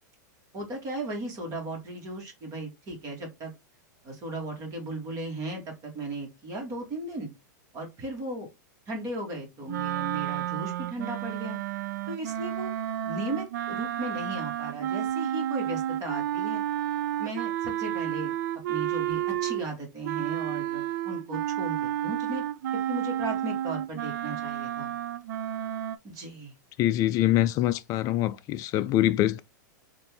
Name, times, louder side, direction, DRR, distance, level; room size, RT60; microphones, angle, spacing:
voice 1, 0.5-3.5 4.0-7.3 7.7-8.5 8.9-11.6 12.1-12.7 13.1-16.6 17.2-18.3 18.7-22.4 22.9-24.9 26.0-26.5, right 2 dB, 35° right, 1.7 m, -36 dB
sound 1, 9.7-19.7 20.0-26.0, right 12 dB, 70° right, 0.4 m, -31 dB
voice 2, 26.8-29.4, left 13 dB, 35° left, 0.4 m, -24 dB
4.1 x 2.6 x 3.4 m
hypercardioid pair, 130°, 10 cm